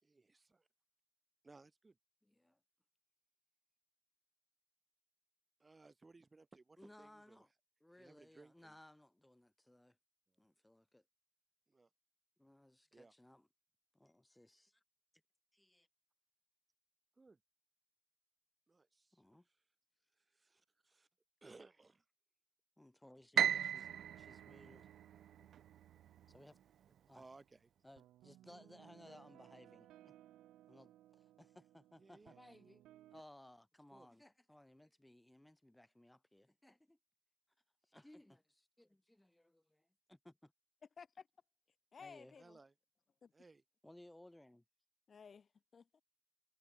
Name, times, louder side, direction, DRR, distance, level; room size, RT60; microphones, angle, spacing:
voice 1, 0.0-0.7 1.4-2.0 5.6-7.4 8.0-8.8 11.7-11.9 12.9-13.1 17.2-17.4 18.7-19.2 20.1-21.1 21.4-22.0 27.1-27.7 32.0-32.4 33.9-34.1 42.4-42.7 43.3-43.6, right 3 dB, 20° right, 4.5 m, -62 dB
voice 2, 2.2-2.6 6.8-7.5 7.8-10.0 10.4-11.0 12.4-13.5 13.9-14.8 15.5-15.9 19.1-19.5 22.8-24.9 25.4-25.5 26.3-26.6 27.1-27.3 27.8-30.1 30.7-32.8 33.1-37.0 37.8-40.5 42.0-42.3 43.8-44.6, left 1 dB, 5° left, 6.7 m, -62 dB
Piano, 23.4-25.6, right 9 dB, 60° right, 0.4 m, -36 dB
sound 1, 23.8-26.8 28.0-33.2, right 14 dB, 85° right, 2.8 m, -63 dB
voice 3, 41.0-41.3 41.9-42.6 43.2-43.3 45.1-46.0, left 6 dB, 40° left, 2.3 m, -56 dB
cardioid pair, 115°, 0 cm